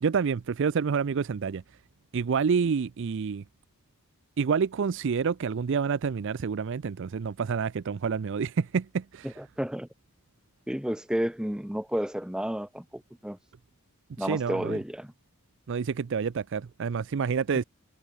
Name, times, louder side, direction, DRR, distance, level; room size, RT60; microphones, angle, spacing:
voice 1, 0.0-1.6 2.1-3.4 4.4-9.3 14.2-14.8 15.7-17.6, right 6 dB, 60° right, 0.4 m, -28 dB
voice 2, 9.2-9.9 10.7-13.4 14.2-15.1, equal, 5° right, 0.6 m, -31 dB
head